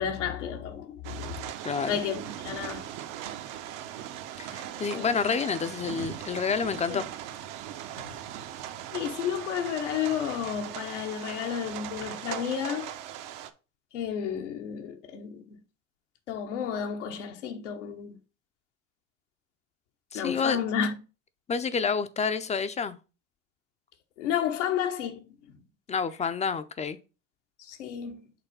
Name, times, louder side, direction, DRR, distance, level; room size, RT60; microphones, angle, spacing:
voice 1, 0.0-1.5 1.9-2.9 4.9-5.3 6.9-7.0 8.0-8.2 8.9-13.0 13.9-15.6 16.3-18.2 20.1-21.0 24.2-25.5 27.6-28.3, left 8 dB, 90° left, 1.2 m, -32 dB
sound 1, 1.0-13.5, right 11 dB, 60° right, 0.8 m, -39 dB
voice 2, 4.4-7.0 20.1-20.6 21.5-23.0 25.9-27.0, left 6 dB, 20° left, 0.4 m, -29 dB
5.8 x 3.4 x 5.4 m
supercardioid pair, 105°, 35 cm